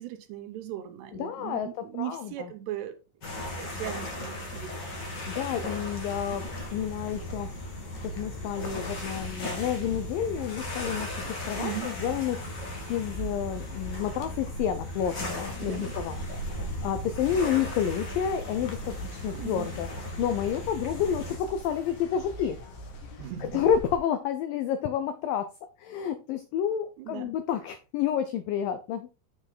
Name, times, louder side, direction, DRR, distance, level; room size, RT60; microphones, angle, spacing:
voice 1, 0.0-2.9 3.5-4.9 11.6-11.9 15.6-15.9 19.3-19.7 23.2-23.6 27.0-27.4, right 12 dB, 80° right, 3.0 m, -38 dB
voice 2, 1.1-2.5 5.3-6.4 6.7-7.5 8.0-16.2 16.8-19.9 20.2-22.6 23.1-23.2 23.5-25.5 25.8-29.1, left 9 dB, 85° left, 1.9 m, -30 dB
sound 1, 3.2-21.4, left 1 dB, 35° left, 2.0 m, -37 dB
sound 2, 6.4-24.0, left 1 dB, 60° left, 2.2 m, -42 dB
7.3 x 6.4 x 3.9 m
omnidirectional pair, 4.8 m